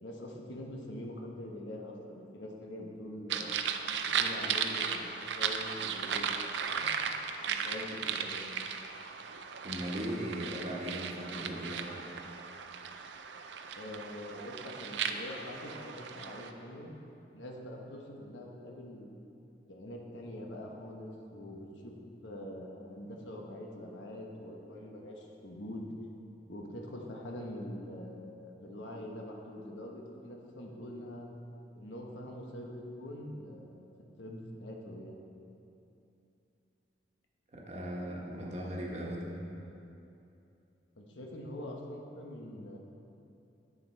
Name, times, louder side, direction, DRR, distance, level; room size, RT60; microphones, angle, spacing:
voice 1, 0.0-3.6 4.0-6.3 6.7-7.2 7.5-8.5 13.8-16.9 17.3-19.1 19.7-21.9 22.2-25.9 26.5-31.3 31.7-33.9 34.2-35.2 41.0-42.8, left 1 dB, 85° left, 0 dB, 1.1 m, -44 dB
sound 1, 3.3-16.5, right 7 dB, 70° right, 0.5 m, -36 dB
voice 2, 9.6-11.9 37.5-39.3, equal, 40° right, -2 dB, 1.2 m, -38 dB
9.2 x 6.8 x 4.5 m, 2.8 s
head